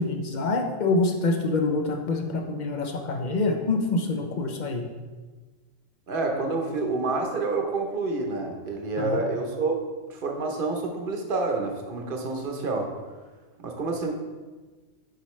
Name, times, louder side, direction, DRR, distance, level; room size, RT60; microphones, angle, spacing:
voice 1, 0.0-4.9 9.0-9.2, left 3 dB, 55° left, 3 dB, 0.5 m, -26 dB
voice 2, 6.1-9.8 10.1-12.9 13.6-14.2, right 3 dB, 50° right, 2 dB, 0.8 m, -28 dB
6.6 x 5.2 x 3.1 m, 1.3 s
omnidirectional pair, 1.4 m